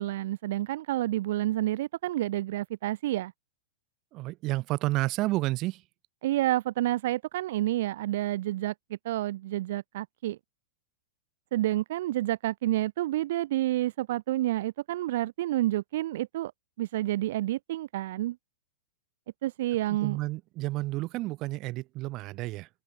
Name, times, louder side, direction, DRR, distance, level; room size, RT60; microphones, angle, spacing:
voice 1, 0.0-3.3 6.2-10.4 11.5-16.5 16.8-18.4 19.4-20.2, right 15 dB, 60° right, 0.7 m, -29 dB
voice 2, 4.1-5.8 19.9-22.7, right 19 dB, 35° right, 5.7 m, -31 dB
open air
hypercardioid pair, 150°, 0 cm